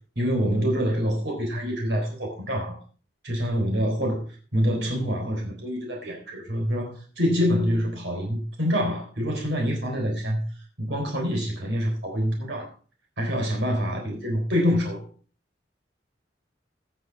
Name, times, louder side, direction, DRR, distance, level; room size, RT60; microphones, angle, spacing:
voice 1, 0.2-2.8 3.2-4.2 4.5-10.4 10.8-12.7 13.2-15.1, equal, 70° right, 3.9 m, -26 dB
17.5 x 6.7 x 4.7 m
head